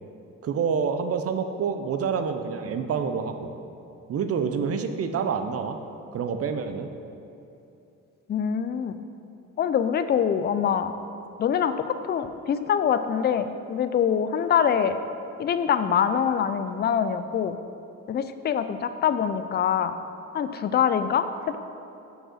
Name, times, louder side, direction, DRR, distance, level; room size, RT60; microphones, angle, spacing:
voice 1, 0.4-3.5 4.1-5.8 6.1-6.9, right 6 dB, 50° right, 8 dB, 0.6 m, -27 dB
voice 2, 8.3-8.9 9.6-10.9 11.4-15.0 15.4-17.6 18.1-19.9 20.3-21.6, left 8 dB, 35° left, 10 dB, 0.4 m, -24 dB
6.4 x 4.8 x 6.3 m, 2.8 s
cardioid pair, 90°, 30 cm